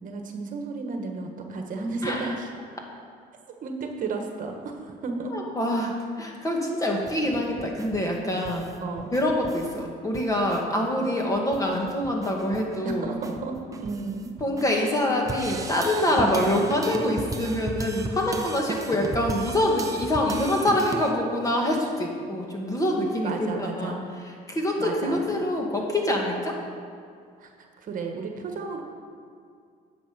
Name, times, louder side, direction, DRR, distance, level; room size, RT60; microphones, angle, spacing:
voice 1, 0.0-2.5 3.6-5.3 8.8-9.1 12.8-14.3 16.1-16.6 23.2-24.1 24.8-25.3 27.4-28.8, right 3 dB, 50° right, 3 dB, 1.3 m, -33 dB
voice 2, 5.3-8.7 9.1-13.1 14.4-24.0 24.5-26.6, left 1 dB, 20° left, 0 dB, 1.8 m, -25 dB
sound 1, 6.9-9.8 10.1-10.6 11.0-11.1 11.3-14.6 15.3-21.1, right 3 dB, 20° right, 0.7 m, -36 dB
10.0 x 7.4 x 5.2 m, 2.2 s
cardioid pair, 110°, 17 cm